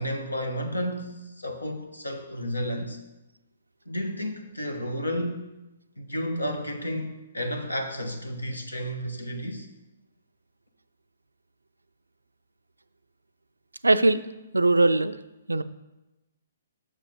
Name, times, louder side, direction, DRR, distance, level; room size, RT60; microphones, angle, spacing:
voice 1, 0.0-3.0 3.9-5.4 6.0-9.7, equal, 90° left, 6 dB, 1.0 m, -32 dB
voice 2, 13.8-14.2 14.5-15.2 15.5-15.6, right 2 dB, 85° right, 13 dB, 0.4 m, -20 dB
7.4 x 6.2 x 3.5 m, 0.99 s
figure-of-eight pair, 130°, 0 cm